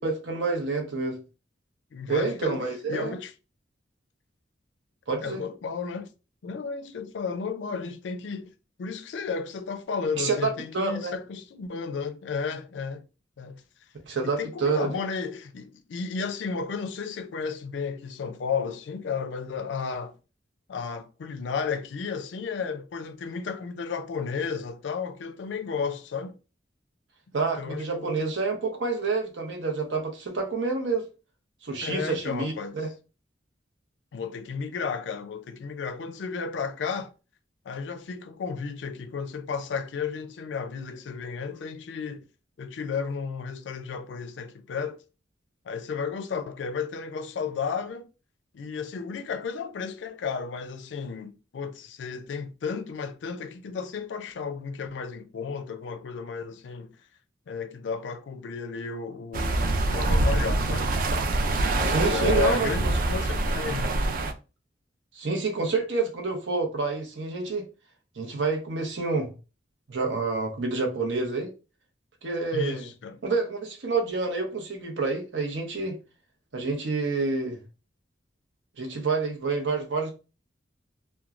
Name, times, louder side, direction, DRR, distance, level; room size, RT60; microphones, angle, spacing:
voice 1, 0.0-1.2 2.1-3.1 5.1-5.4 10.2-11.1 14.0-15.0 27.3-31.1 31.6-32.9 61.8-62.7 65.1-67.7 68.2-69.3 69.9-71.5 72.2-72.9 73.2-76.0 76.5-77.6 78.8-80.1, right 4 dB, 80° right, 0.8 m, -28 dB
voice 2, 1.9-2.6 2.9-3.3 5.2-6.1 6.4-8.5 8.8-13.0 13.4-13.6 14.2-20.1 20.7-26.4 27.6-28.3 31.8-32.9 34.1-37.1 37.7-42.2 42.6-45.0 45.7-48.1 48.5-57.0 57.5-61.0 61.7-63.9 72.5-73.2, left 5 dB, 75° left, 0.4 m, -33 dB
sound 1, 59.3-64.3, right 2 dB, 50° right, 0.3 m, -25 dB
3.0 x 2.2 x 2.4 m
head